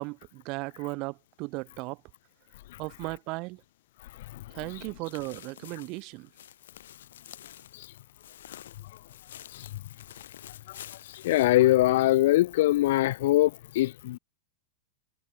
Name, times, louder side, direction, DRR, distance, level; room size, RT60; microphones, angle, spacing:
voice 1, 0.0-2.0 2.8-3.6 4.5-6.3, right 26 dB, 30° right, 1.7 m, -36 dB
sound 1, 4.7-12.4 12.7-12.8 13.3-13.4, left 11 dB, 90° left, 1.8 m, -49 dB
voice 2, 11.1-14.2, left 16 dB, 55° left, 0.4 m, -23 dB
supercardioid pair, 175°, 0 cm